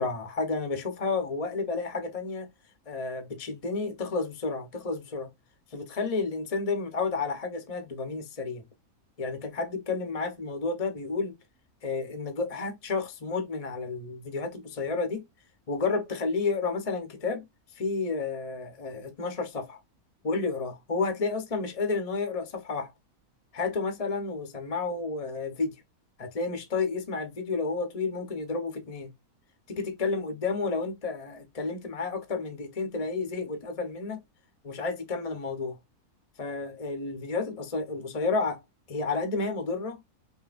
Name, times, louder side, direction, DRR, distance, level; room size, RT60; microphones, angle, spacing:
voice 1, 0.0-2.5 2.9-5.3 5.7-8.6 9.2-11.4 11.8-15.2 15.7-17.4 17.7-19.8 20.2-22.9 23.5-25.8 26.2-29.1 29.7-34.2 34.6-35.8 36.4-38.6 38.9-40.0, left 4 dB, 30° left, 0.7 m, -31 dB
5.4 x 2.7 x 2.4 m
omnidirectional pair, 1.6 m